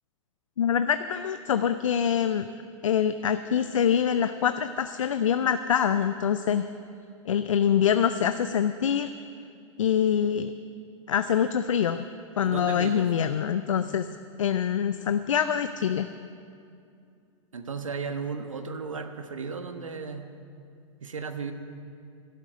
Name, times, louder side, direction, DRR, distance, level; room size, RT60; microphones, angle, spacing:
voice 1, 0.6-2.5 2.8-6.7 7.3-9.1 9.8-10.5 11.1-12.1 12.4-14.1 14.4-16.1, left 8 dB, 80° left, 10 dB, 0.5 m, -25 dB
voice 2, 12.4-13.0 17.5-20.3 21.0-21.5, right 5 dB, 85° right, 7 dB, 1.2 m, -35 dB
12.0 x 12.0 x 7.7 m, 2.5 s
hypercardioid pair, 100°, 16 cm